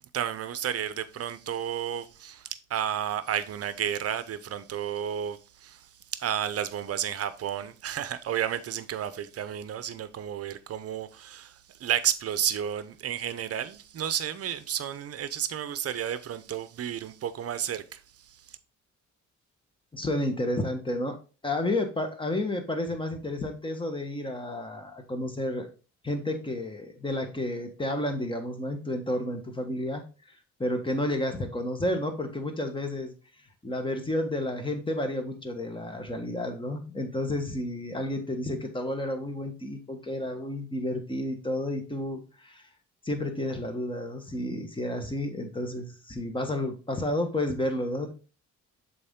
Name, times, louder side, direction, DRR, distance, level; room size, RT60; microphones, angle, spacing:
voice 1, 0.1-18.6, right 9 dB, 55° right, 0.7 m, -32 dB
voice 2, 19.9-21.2 21.4-25.7 26.0-30.0 30.6-33.1 33.6-42.6 43.0-48.1, left 1 dB, 15° left, 1.4 m, -31 dB
6.8 x 4.2 x 3.7 m
cardioid pair, 90°, 30 cm